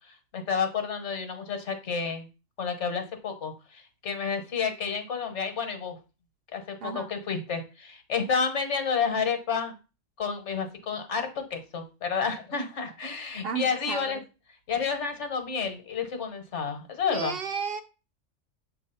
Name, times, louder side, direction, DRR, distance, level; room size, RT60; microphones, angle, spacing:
voice 1, 0.3-2.3 2.6-6.0 6.5-9.7 10.2-14.2 14.7-17.3, left 6 dB, 65° left, 7 dB, 1.3 m, -30 dB
voice 2, 6.8-7.1 13.4-14.2 17.1-17.8, right 6 dB, 60° right, 7 dB, 0.7 m, -33 dB
7.1 x 2.7 x 5.5 m, 0.30 s
omnidirectional pair, 1.3 m